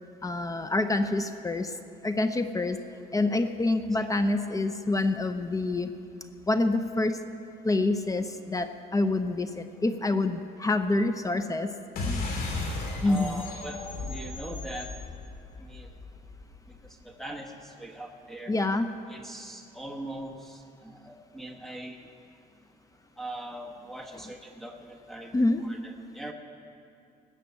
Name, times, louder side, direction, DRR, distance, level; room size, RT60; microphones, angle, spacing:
voice 1, 0.2-1.7 2.0-2.8 3.1-5.9 6.5-7.2 7.6-11.7 12.0-12.3 13.0-13.4 18.5-18.9 25.3-25.6, left 2 dB, 20° left, 9 dB, 0.7 m, -27 dB
sound 1, 12.0-16.9, left 2 dB, 65° left, 2.9 m, -35 dB
voice 2, 13.0-14.9 15.6-15.9 16.7-16.8 17.0-18.6 19.1-22.1 23.2-26.3, right 1 dB, ahead, 1 dB, 1.2 m, -41 dB
19.0 x 6.8 x 8.6 m, 2.5 s
cardioid pair, 110°, 17 cm